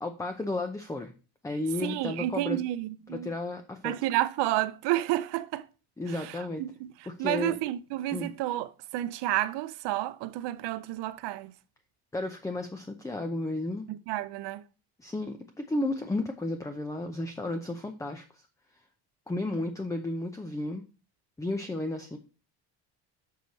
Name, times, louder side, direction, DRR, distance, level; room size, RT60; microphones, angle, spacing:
voice 1, 0.0-1.1 1.4-2.6 3.1-3.9 6.0-6.6 7.1-7.6 8.1-8.3 12.1-13.9 15.0-18.5 19.3-20.8 21.4-22.2, left 2 dB, 10° left, 0.6 m, -33 dB
voice 2, 1.8-3.3 3.8-5.7 6.6-6.7 7.2-11.5 13.9-14.6, right 15 dB, 80° right, 0.7 m, -30 dB
6.6 x 6.3 x 4.1 m
cardioid pair, 135°, 41 cm